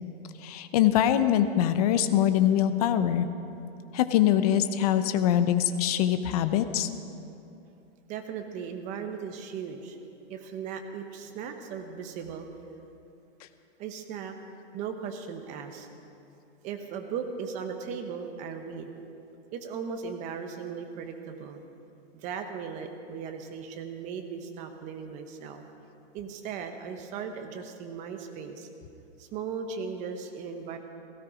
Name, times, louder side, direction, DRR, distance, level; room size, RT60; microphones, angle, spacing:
voice 1, 0.4-3.3 3.9-6.9, left 11 dB, 35° left, 10 dB, 0.7 m, -23 dB
voice 2, 8.1-10.0 10.3-12.5 13.8-14.4 14.7-15.9 16.6-18.9 19.5-21.7 22.1-25.6 26.1-28.7 29.2-30.8, right 6 dB, 20° right, 5 dB, 1.0 m, -37 dB
17.0 x 15.5 x 5.0 m, 2.8 s
hypercardioid pair, 160°, 33 cm